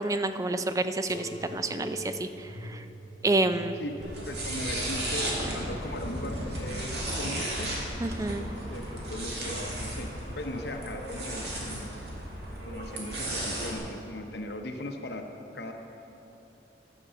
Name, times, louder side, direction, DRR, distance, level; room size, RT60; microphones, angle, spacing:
voice 1, 0.0-2.8 3.2-3.8 8.0-8.4, right 2 dB, 20° right, 10 dB, 0.3 m, -29 dB
sound 1, 1.1-8.3 8.8-9.6 10.4-10.9 11.9-12.0, left 1 dB, 25° left, 0.6 m, -46 dB
voice 2, 3.8-7.7 8.3-10.1 10.3-12.0 12.7-15.2 15.5-15.7, left 1 dB, 60° left, 4 dB, 0.8 m, -38 dB
sound 2, 4.0-13.8, right 1 dB, 65° right, 2.1 m, -35 dB
sound 3, 4.6-12.3, equal, 5° left, 1.4 m, -43 dB
11.0 x 6.8 x 6.8 m, 3.0 s
head